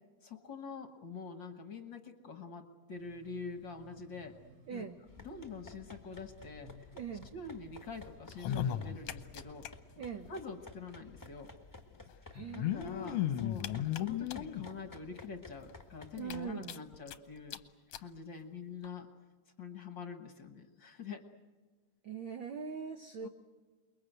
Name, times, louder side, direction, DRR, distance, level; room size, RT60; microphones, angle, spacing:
voice 1, 0.2-4.4 4.7-4.9 5.2-6.9 7.3-9.7 10.3-11.5 12.2-12.3 12.5-17.6 18.0-19.1 19.6-21.2 23.2-23.3, left 5 dB, 50° left, 6 dB, 1.5 m, -45 dB
sound 1, 2.9-11.3, left 1 dB, 55° right, 5.8 m, -61 dB
voice 2, 4.7-5.0 6.9-7.3 10.0-10.3 12.3-13.1 16.2-16.8 22.0-23.3, right 7 dB, 85° right, 7 dB, 1.0 m, -42 dB
sound 2, 5.1-16.5, left 3 dB, 15° left, 0.8 m, -54 dB
sound 3, 8.2-9.7 10.0-10.1 10.2-10.3 11.4-11.5 12.3-14.6 15.2-15.3 15.7-15.8 16.2-17.1 17.5-17.6 17.9-18.0 18.8-18.9, left 11 dB, 65° left, 1.7 m, -35 dB
28.5 x 22.0 x 8.0 m, 1.3 s
omnidirectional pair, 3.5 m